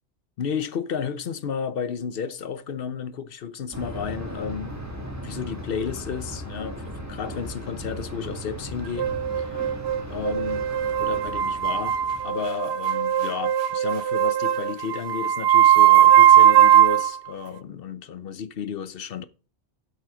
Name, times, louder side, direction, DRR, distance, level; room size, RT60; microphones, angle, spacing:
voice 1, 0.4-4.8 5.2-9.7 10.1-10.7 11.0-12.0 12.2-19.2, left 7 dB, 60° left, 0.9 m, -32 dB
Thunder, 3.7-12.5, equal, 15° right, 1.7 m, -37 dB
sound 1, 9.0-17.1, right 11 dB, 75° right, 0.9 m, -19 dB
8.0 x 7.5 x 4.9 m
omnidirectional pair, 1.1 m